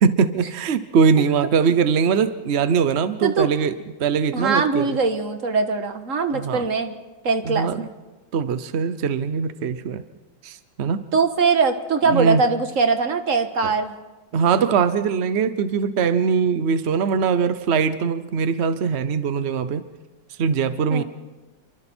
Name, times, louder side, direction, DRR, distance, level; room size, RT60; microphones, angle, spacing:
voice 1, 0.0-3.7 4.0-5.0 6.3-6.7 7.4-7.8 8.3-10.0 10.4-11.1 12.1-12.4 13.6-13.7 14.3-19.8 20.4-21.0, right 6 dB, 60° right, 12 dB, 0.6 m, -21 dB
voice 2, 4.3-6.9 7.2-7.9 11.1-13.9 20.9-21.0, right 4 dB, 45° right, 7 dB, 1.7 m, -21 dB
28.5 x 24.0 x 4.4 m, 1.2 s
omnidirectional pair, 2.2 m